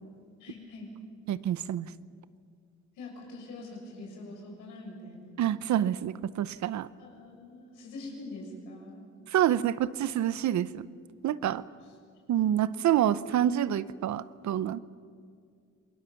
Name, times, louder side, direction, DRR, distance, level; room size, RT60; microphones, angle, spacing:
voice 1, 0.4-0.9 3.0-5.4 7.0-9.0 11.8-11.9, left 2 dB, 90° left, 0 dB, 7.1 m, -44 dB
voice 2, 1.3-1.9 5.4-6.9 9.3-10.9 11.2-11.6 12.3-14.8, right 11 dB, 70° right, 16 dB, 0.9 m, -27 dB
28.0 x 21.0 x 7.1 m, 2.2 s
cardioid pair, 90°, 30 cm